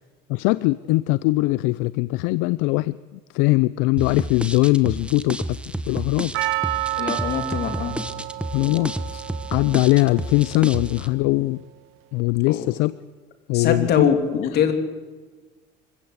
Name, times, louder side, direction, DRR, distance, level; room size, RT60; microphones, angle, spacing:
voice 1, 0.3-5.4 5.9-6.3 8.5-9.2 9.5-11.6 12.1-12.9 13.5-14.1, left 21 dB, 80° left, 18 dB, 0.6 m, -21 dB
sound 1, 4.0-11.1, right 1 dB, 5° right, 1.2 m, -31 dB
Percussion, 6.3-11.3, right 17 dB, 75° right, 1.0 m, -31 dB
voice 2, 7.0-8.0 12.5-12.7 13.5-14.7, left 7 dB, 55° left, 7 dB, 3.1 m, -22 dB
25.5 x 16.0 x 8.2 m, 1.4 s
supercardioid pair, 110°, 20 cm